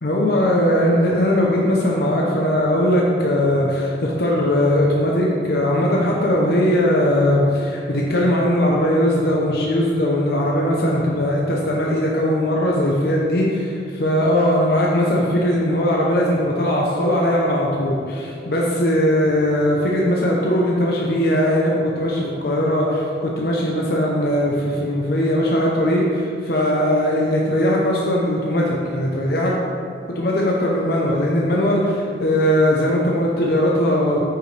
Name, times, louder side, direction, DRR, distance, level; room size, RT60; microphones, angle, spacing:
voice 1, 0.0-29.6 30.1-34.2, left 1 dB, 60° left, -3 dB, 0.8 m, -19 dB
8.7 x 5.4 x 3.4 m, 2.4 s
head